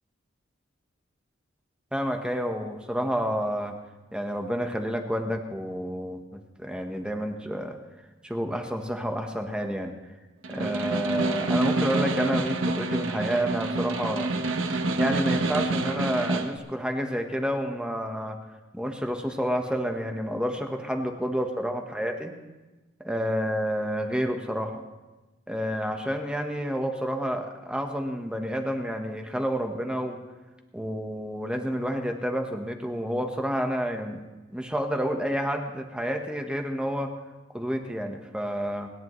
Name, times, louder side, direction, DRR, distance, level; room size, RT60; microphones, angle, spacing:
voice 1, 1.9-3.7 4.1-7.8 8.2-9.9 10.5-14.3 15.0-18.4 18.7-22.3 23.0-24.8 25.5-30.2 30.7-34.2 34.5-37.1 37.5-38.9, equal, 5° right, 4 dB, 1.2 m, -29 dB
Snare drum, 10.4-16.6, right 2 dB, 85° right, 1.0 m, -27 dB
29.5 x 10.5 x 3.2 m, 1.1 s
head